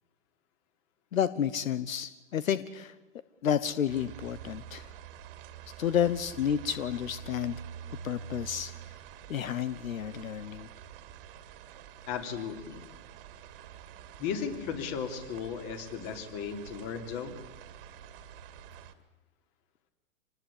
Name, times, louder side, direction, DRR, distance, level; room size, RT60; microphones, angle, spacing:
voice 1, 1.1-2.9 3.4-4.9 5.8-7.6 8.0-8.7 9.3-10.7, left 9 dB, 85° left, 15 dB, 1.2 m, -30 dB
sound 1, 3.9-18.9, right 9 dB, 45° right, 2.1 m, -47 dB
voice 2, 12.1-12.8 14.2-17.4, left 7 dB, 35° left, 7 dB, 3.1 m, -36 dB
26.5 x 19.5 x 8.5 m, 1.1 s
hypercardioid pair, 145°, 40 cm